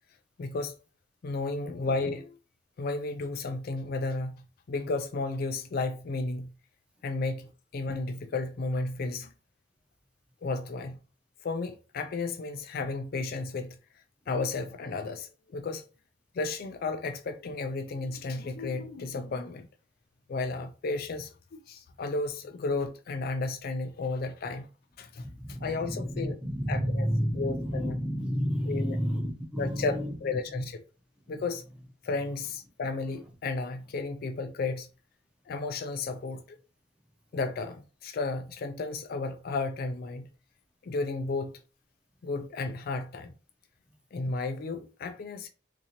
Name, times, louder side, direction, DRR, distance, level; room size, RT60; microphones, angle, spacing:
voice 1, 0.4-0.7 1.2-2.4 2.8-6.5 7.0-9.3 10.4-11.0 11.4-13.8 14.3-15.8 16.3-19.7 20.3-24.7 25.0-26.4 26.7-27.1 27.3-27.9 28.7-29.0 29.6-30.8 31.3-31.6 32.0-34.9 35.5-36.6 37.3-40.3 40.8-41.5 42.2-43.3 44.1-45.5, left 3 dB, 50° left, 0.4 m, -33 dB
voice 2, 25.2-30.1 30.6-30.7 31.3-31.4, equal, 5° right, 0.7 m, -31 dB
3.7 x 2.8 x 2.8 m
head